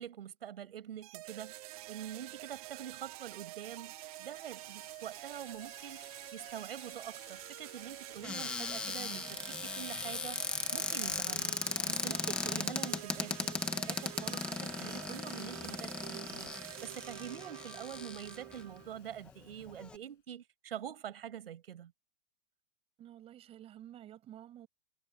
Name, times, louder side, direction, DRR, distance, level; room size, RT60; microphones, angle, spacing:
voice 1, 0.0-1.5 1.9-10.4 10.7-16.5 16.8-21.9, right 10 dB, 85° right, 6.7 m, -45 dB
sound 1, 1.0-19.0, right 20 dB, 40° right, 1.4 m, -48 dB
Boiling, 3.3-20.1, left 13 dB, 60° left, 6.9 m, -61 dB
Cupboard open or close, 8.2-18.6 19.3-19.4 19.6-20.0, left 4 dB, 5° left, 0.3 m, -37 dB
voice 2, 23.0-24.7, right 12 dB, 20° right, 5.5 m, -51 dB
supercardioid pair, 165°, 29 cm